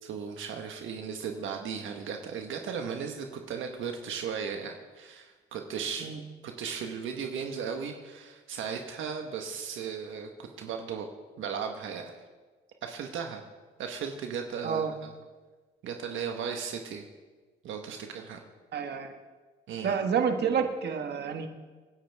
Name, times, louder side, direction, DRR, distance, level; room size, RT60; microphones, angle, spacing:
voice 1, 0.0-6.1 6.4-11.1 11.4-12.1 12.8-13.4 13.8-15.1 15.8-17.0 17.6-18.4 19.7-20.0, right 6 dB, 80° right, 4 dB, 1.4 m, -36 dB
voice 2, 18.7-19.1 19.8-21.5, right 6 dB, 60° right, 5 dB, 1.6 m, -29 dB
27.5 x 11.0 x 3.6 m, 1.3 s
cardioid pair, 90°, 20 cm